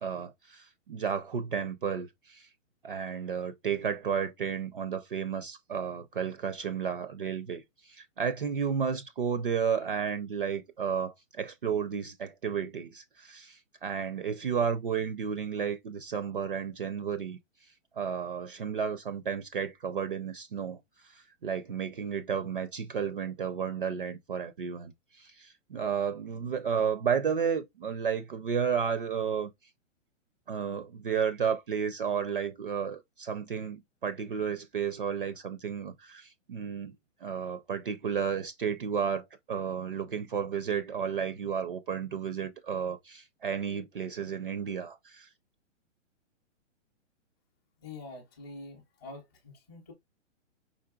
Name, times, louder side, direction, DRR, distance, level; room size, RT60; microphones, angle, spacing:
voice 1, 0.0-2.5 2.8-17.4 17.9-29.5 30.5-36.9 37.2-45.3, right 7 dB, 45° right, 0.4 m, -32 dB
voice 2, 47.8-49.9, left 3 dB, 20° left, 0.6 m, -46 dB
5.0 x 3.9 x 2.3 m
hypercardioid pair, 175°, 39 cm